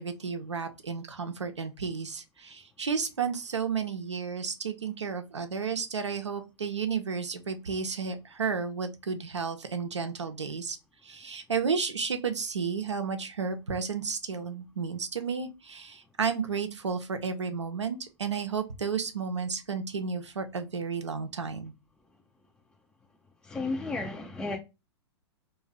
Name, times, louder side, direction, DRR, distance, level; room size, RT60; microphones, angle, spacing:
voice 1, 0.0-10.8 11.0-21.7, right 5 dB, 90° right, 0.5 m, -32 dB
voice 2, 23.4-24.6, left 3 dB, 5° left, 0.3 m, -33 dB
2.5 x 2.2 x 3.2 m
figure-of-eight pair, 105°, 15 cm